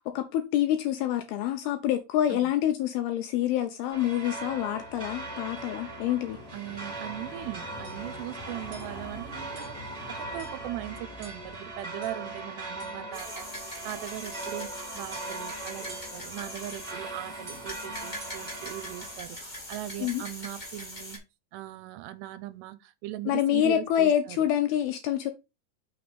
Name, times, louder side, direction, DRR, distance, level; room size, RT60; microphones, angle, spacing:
voice 1, 0.2-6.4 20.0-20.2 23.3-25.3, left 11 dB, 80° left, 2.3 m, -27 dB
sound 1, 3.9-19.2, right 2 dB, 20° right, 1.0 m, -39 dB
voice 2, 6.5-21.2 21.5-24.5, right 15 dB, 85° right, 2.7 m, -40 dB
sound 2, 7.8-8.1 8.7-9.0 9.5-9.8 10.4-10.7 11.2-11.6 12.0-12.4 12.8-13.0 13.5-13.8 14.3-14.6 15.1-15.5 15.9-16.3 16.7-16.9 17.5-17.7 18.2-18.5, right 3 dB, 65° right, 1.1 m, -51 dB
sound 3, 13.1-21.2, left 1 dB, 25° left, 0.9 m, -42 dB
6.3 x 3.4 x 5.1 m
omnidirectional pair, 4.9 m